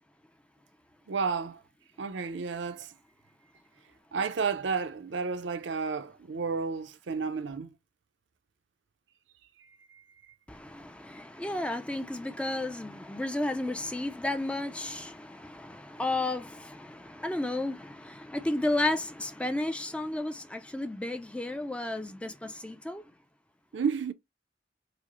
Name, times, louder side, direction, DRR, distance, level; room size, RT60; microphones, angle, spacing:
voice 1, 1.1-1.6 2.0-2.9 4.1-7.7 9.6-10.0 23.7-24.1, right 5 dB, 70° right, 0.5 m, -32 dB
voice 2, 10.5-23.0, left 2 dB, 5° left, 0.3 m, -33 dB
4.9 x 2.0 x 2.9 m
head